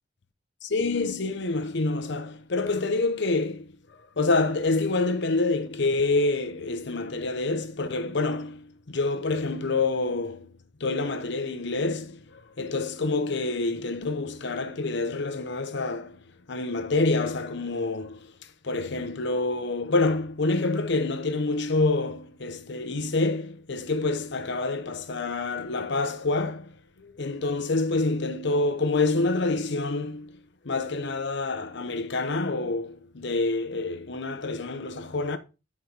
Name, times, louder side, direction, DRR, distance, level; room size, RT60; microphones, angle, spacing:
voice 1, 0.6-18.3 18.6-30.4 30.6-35.4, left 3 dB, 65° left, 0.8 m, -27 dB
9.6 x 4.8 x 3.9 m
head